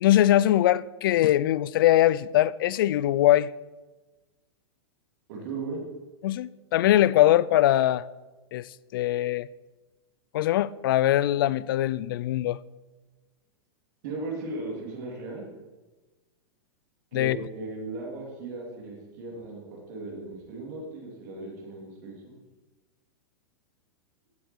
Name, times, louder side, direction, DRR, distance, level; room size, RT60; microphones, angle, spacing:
voice 1, 0.0-3.5 6.2-8.0 8.5-8.7 8.9-9.5 10.3-12.6 17.1-17.4, left 13 dB, 60° left, 0.4 m, -22 dB
voice 2, 5.3-5.8 14.0-15.4 17.1-19.6 19.9-22.2, right 3 dB, 45° right, 3.0 m, -37 dB
15.5 x 6.6 x 4.6 m
supercardioid pair, 170°, 13 cm